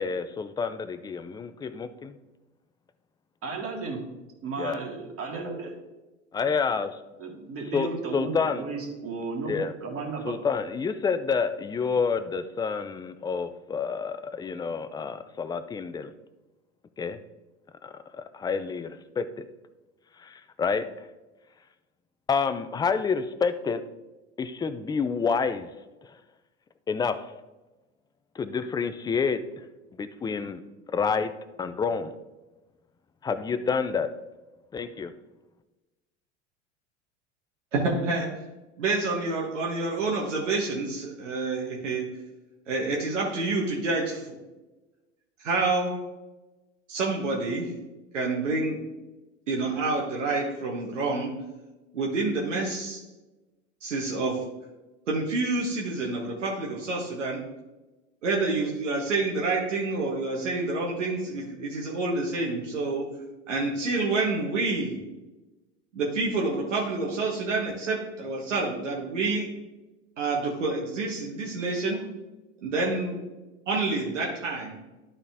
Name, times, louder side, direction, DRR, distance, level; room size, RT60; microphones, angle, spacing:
voice 1, 0.0-2.2 4.6-4.8 6.3-7.0 7.7-8.7 9.5-9.7 10.2-16.1 17.0-17.2 17.8-19.2 20.2-20.9 22.3-23.8 24.4-25.7 26.0-26.1 26.9-27.2 28.4-29.4 30.0-30.6 30.9-31.3 31.6-32.2 33.2-34.1 34.7-35.1, left 5 dB, 10° left, 11 dB, 0.4 m, -28 dB
voice 2, 3.4-4.0 4.4-5.7 7.2-10.4, right 4 dB, 40° right, 0 dB, 2.2 m, -34 dB
voice 3, 37.7-38.3 38.8-42.0 42.7-44.4 45.4-45.9 46.9-47.7 48.1-48.8 49.5-51.3 51.9-53.0 53.8-54.4 55.1-57.4 58.2-63.0 63.5-65.0 65.9-69.5 70.2-72.0 72.6-73.2 73.7-74.8, right 3 dB, 80° right, -3 dB, 1.4 m, -28 dB
11.5 x 4.3 x 3.5 m, 1.1 s
hypercardioid pair, 80°, 36 cm